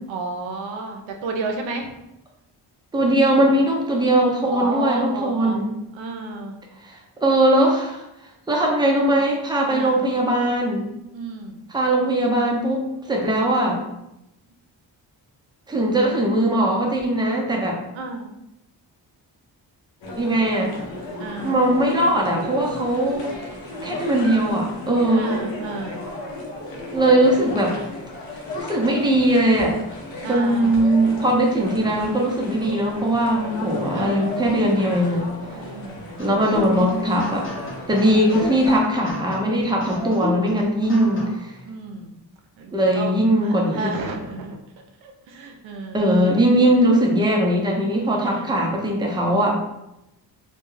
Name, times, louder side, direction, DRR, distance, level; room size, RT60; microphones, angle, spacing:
voice 1, 0.1-1.9 4.4-5.6 5.9-6.6 9.7-10.0 11.1-11.6 17.9-18.3 21.2-21.6 25.1-26.1 30.2-30.8 33.9-34.5 35.5-36.2 37.9-38.3 41.6-42.1 42.6-43.1 43.4-44.6 45.0-46.1 48.2-48.5, right 3 dB, 85° right, 3 dB, 0.6 m, -32 dB
voice 2, 2.9-5.7 6.8-8.0 8.5-10.8 11.7-13.8 15.7-17.8 20.2-20.7 21.4-23.3 23.8-25.4 26.9-27.8 28.6-29.8 30.3-35.3 36.2-37.5 37.9-41.5 42.7-44.0 45.9-49.5, right 1 dB, 10° right, -1 dB, 0.6 m, -20 dB
sound 1, 20.0-38.8, left 2 dB, 80° left, 0.7 m, -34 dB
sound 2, 36.2-41.5, left 1 dB, 25° left, 0.8 m, -33 dB
2.2 x 2.2 x 3.1 m, 0.89 s
cardioid pair, 65°, 44 cm